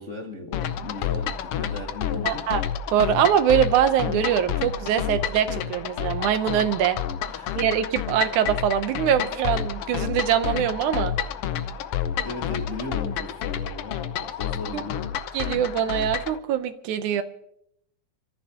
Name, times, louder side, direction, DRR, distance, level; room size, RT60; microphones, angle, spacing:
voice 1, 0.0-2.5 7.3-7.6 12.2-15.1, left 2 dB, 45° left, 0 dB, 0.9 m, -37 dB
sound 1, 0.5-16.4, left 9 dB, 75° left, 1.3 m, -29 dB
voice 2, 2.2-2.6 2.9-7.0 7.6-11.2 14.7-14.8 15.3-17.2, right 9 dB, 80° right, 10 dB, 2.3 m, -23 dB
30.0 x 14.5 x 2.9 m, 0.73 s
omnidirectional pair, 3.5 m